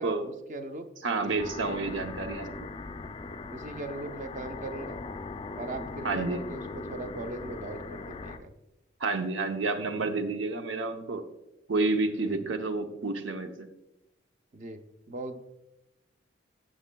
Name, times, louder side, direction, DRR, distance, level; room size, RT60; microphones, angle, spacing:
voice 1, 0.0-0.9 1.2-1.4 3.5-5.0 5.5-8.5 12.2-12.4 14.5-14.8 15.1-15.4, right 2 dB, 40° right, 7 dB, 0.5 m, -39 dB
voice 2, 1.0-2.7 6.0-6.4 9.0-11.2 11.7-13.7, right 3 dB, 75° right, 7 dB, 0.7 m, -30 dB
sound 1, 1.4-8.4, left 3 dB, 30° left, 0.3 m, -39 dB
12.5 x 6.1 x 2.2 m, 0.93 s
head